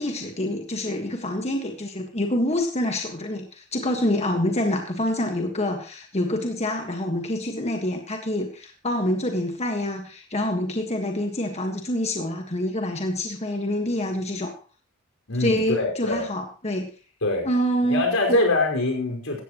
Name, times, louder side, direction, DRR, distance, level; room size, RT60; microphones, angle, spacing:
voice 1, 0.0-14.5 15.4-16.9 17.4-18.4, left 1 dB, 30° left, 4 dB, 1.6 m, -26 dB
voice 2, 15.3-16.2 17.2-17.5 17.8-19.4, left 2 dB, 85° left, 2 dB, 5.2 m, -24 dB
16.5 x 14.0 x 3.1 m, 0.35 s
head